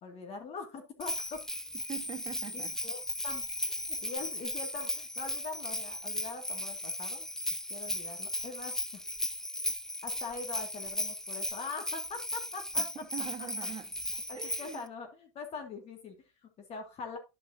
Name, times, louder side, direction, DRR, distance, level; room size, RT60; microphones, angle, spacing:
voice 1, 0.0-1.4 2.5-7.3 7.7-9.0 10.0-13.5 14.3-17.2, left 4 dB, 45° left, 2.3 m, -43 dB
Bell, 1.0-14.8, left 1 dB, 5° left, 0.5 m, -36 dB
voice 2, 1.9-2.8 12.8-13.9 14.3-14.9, right 9 dB, 35° right, 1.5 m, -43 dB
12.0 x 5.5 x 2.8 m
hypercardioid pair, 95°, 15 cm